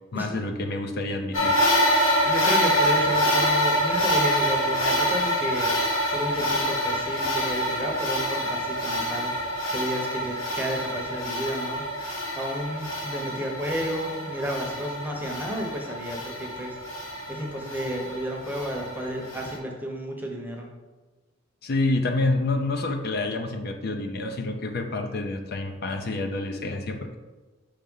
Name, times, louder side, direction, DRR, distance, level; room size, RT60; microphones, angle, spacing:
voice 1, 0.1-1.6 21.6-27.2, left 2 dB, 50° left, 5 dB, 0.5 m, -28 dB
sound 1, 1.3-19.6, equal, 80° left, 1.6 m, -26 dB
voice 2, 2.3-5.7 6.1-9.3 9.7-11.8 12.3-16.8 17.3-20.7, equal, 10° right, 0 dB, 0.8 m, -32 dB
5.6 x 3.5 x 5.4 m, 1.3 s
head